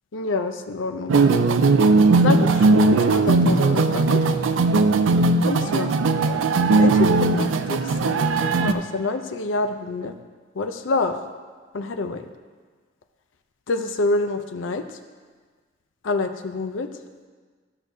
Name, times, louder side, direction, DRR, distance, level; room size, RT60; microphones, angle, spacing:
voice 1, 0.1-1.1 2.2-4.2 5.4-6.0 6.8-10.1 10.6-11.2 11.7-12.3 13.7-14.9 16.0-16.9, left 3 dB, 90° left, 7 dB, 0.5 m, -27 dB
sound 1, 1.1-8.7, right 3 dB, 90° right, 0.4 m, -18 dB
13.5 x 6.3 x 2.7 m, 1.5 s
head